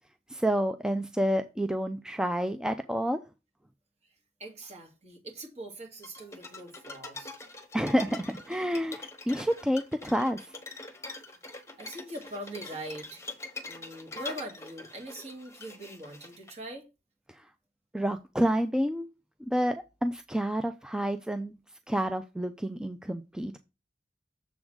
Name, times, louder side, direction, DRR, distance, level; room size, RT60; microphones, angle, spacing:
voice 1, 0.3-3.2 7.7-10.5 17.3-17.4 17.9-19.1 19.5-21.5 21.9-23.6, equal, 5° right, 0.4 m, -29 dB
voice 2, 4.4-7.4 11.8-13.2 13.6-16.8, right 1 dB, 40° right, 2.2 m, -42 dB
sound 1, 6.0-16.5, left 2 dB, 15° left, 1.1 m, -44 dB
7.1 x 3.7 x 6.1 m
head